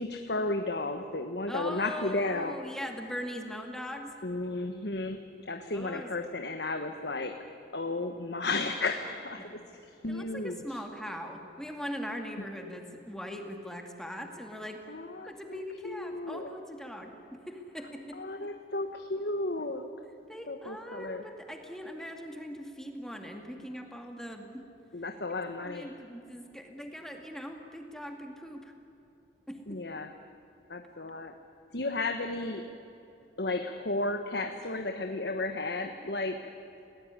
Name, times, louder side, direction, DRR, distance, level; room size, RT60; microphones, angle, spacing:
voice 1, 0.0-2.6 4.2-7.4 7.7-9.6 10.0-10.8 14.9-16.5 18.1-19.9 20.5-21.2 24.9-25.9 29.7-30.1 30.7-31.3 31.7-32.6 33.4-36.4, left 2 dB, 65° left, 6 dB, 1.3 m, -33 dB
voice 2, 1.5-4.1 5.7-6.1 9.4-9.5 10.1-14.8 15.3-18.5 20.3-24.5 25.6-28.7 29.5-29.8, equal, 5° left, 3 dB, 2.3 m, -41 dB
29.5 x 18.5 x 9.8 m, 2.9 s
head